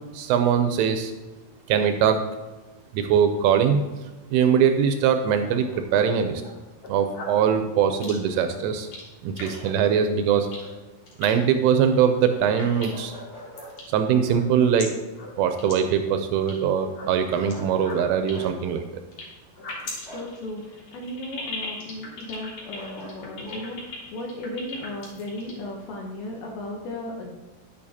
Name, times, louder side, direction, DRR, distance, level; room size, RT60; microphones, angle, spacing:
voice 1, 0.1-1.1 1.7-2.2 2.9-3.8 4.3-6.4 6.9-8.9 9.2-10.5 11.2-13.1 13.9-14.9 15.4-18.9, right 8 dB, 85° right, 7 dB, 2.9 m, -22 dB
Bark, 5.5-6.6 9.4-10.0 10.3-10.5 12.7-13.7 17.3-18.0 18.3-18.5 20.0-20.3 22.7-23.6, equal, 10° left, 1.8 m, -43 dB
sound 1, 6.7-7.5 8.0-8.4 8.8-9.0 9.4-9.6 9.9-10.0 10.5-10.7 11.1-11.3 12.0-12.3 12.6-13.2 13.5-13.9 14.2-14.8 15.2-15.3 15.6-15.7 16.0-16.5 16.9-17.5 17.8-19.2 19.5-25.6, left 4 dB, 50° left, 2.5 m, -38 dB
voice 2, 20.1-27.4, left 1 dB, 75° left, 0 dB, 2.8 m, -35 dB
10.5 x 8.6 x 2.8 m, 1.2 s
omnidirectional pair, 5.9 m